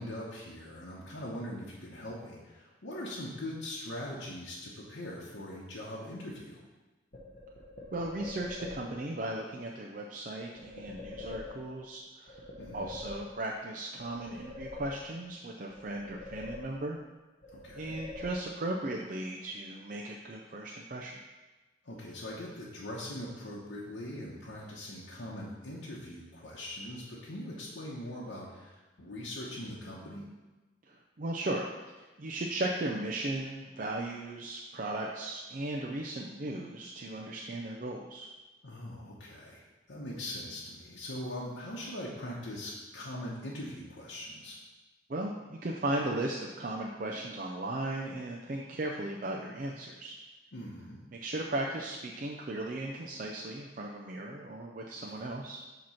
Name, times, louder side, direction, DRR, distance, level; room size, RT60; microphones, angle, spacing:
voice 1, 0.0-6.6 12.6-12.9 17.5-18.0 21.8-30.3 38.6-39.6 39.9-44.6 50.5-51.0 55.1-55.3, left 1 dB, 80° left, -5 dB, 1.0 m, -41 dB
sound 1, 7.1-9.1 10.6-11.9 12.3-13.6 14.0-15.4 15.7-17.1 17.4-18.8, left 3 dB, 45° left, 1.1 m, -45 dB
voice 2, 7.9-12.4 12.7-17.0 17.8-21.2 30.9-31.7 32.0-38.3 45.1-50.2 51.1-55.6, right 2 dB, 45° right, -1 dB, 0.4 m, -36 dB
7.6 x 3.0 x 5.6 m, 1.2 s
head